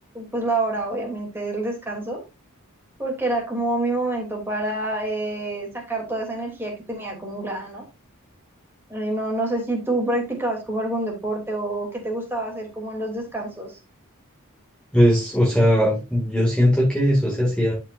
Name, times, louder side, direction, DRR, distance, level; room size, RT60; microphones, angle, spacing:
voice 1, 0.1-2.2 3.0-7.8 8.9-13.8, right 2 dB, 10° right, -1 dB, 2.9 m, -27 dB
voice 2, 14.9-17.7, equal, 5° left, -4 dB, 2.3 m, -19 dB
12.0 x 5.4 x 2.6 m, 0.27 s
head